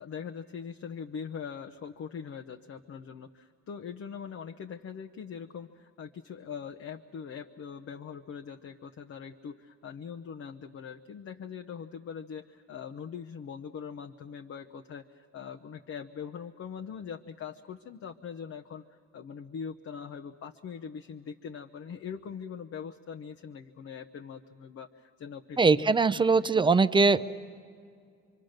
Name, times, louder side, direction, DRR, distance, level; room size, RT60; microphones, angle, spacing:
voice 1, 0.0-18.8 19.1-26.2 26.5-26.7, left 7 dB, 50° left, 4 dB, 0.8 m, -42 dB
voice 2, 25.6-27.2, right 4 dB, 15° right, 14 dB, 0.5 m, -22 dB
25.5 x 24.0 x 6.5 m, 2.2 s
cardioid pair, 90°, 30 cm